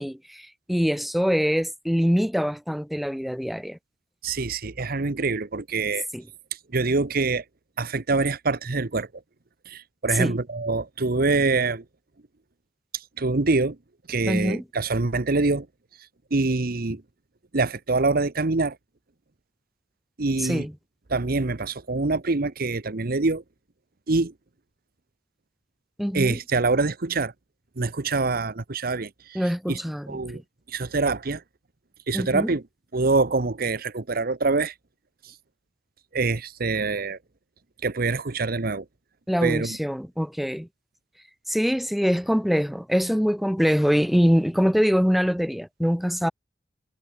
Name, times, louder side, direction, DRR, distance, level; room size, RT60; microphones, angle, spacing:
voice 1, 0.0-3.8 6.1-6.2 10.1-10.4 14.3-14.6 20.4-20.7 26.0-26.4 29.3-30.2 32.1-32.5 39.3-40.7 41.5-46.3, equal, ahead, 1.2 m, -24 dB
voice 2, 4.2-6.1 6.7-7.4 7.8-9.1 9.7-11.8 13.2-13.8 14.1-15.7 16.3-17.0 17.5-18.8 20.2-20.7 21.1-23.4 24.1-24.3 26.1-27.3 27.8-29.4 29.7-29.8 30.1-30.4 30.7-31.4 32.1-32.6 32.9-34.7 36.1-37.2 37.8-38.8 39.4-39.8, right 3 dB, 55° right, 1.0 m, -25 dB
head